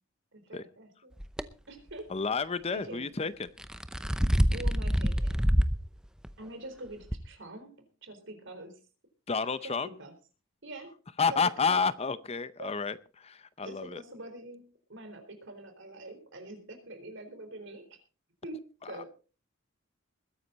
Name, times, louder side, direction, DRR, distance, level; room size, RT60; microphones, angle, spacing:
voice 1, 0.3-1.1 1.7-2.1 2.7-3.0 4.5-5.5 6.4-8.7 9.6-10.1 10.6-10.9 11.3-11.8 12.6-12.7 13.6-14.6 14.9-17.9 18.4-18.6 18.9-19.1, right 2 dB, 60° right, 4.1 m, -44 dB
sound 1, 1.2-1.4 3.4-5.8 6.2-6.3 7.1-7.2, equal, 5° right, 0.7 m, -26 dB
voice 2, 2.1-3.5 9.3-9.9 11.2-14.0 18.8-19.0, left 5 dB, 30° left, 0.6 m, -30 dB
21.0 x 9.8 x 4.1 m
head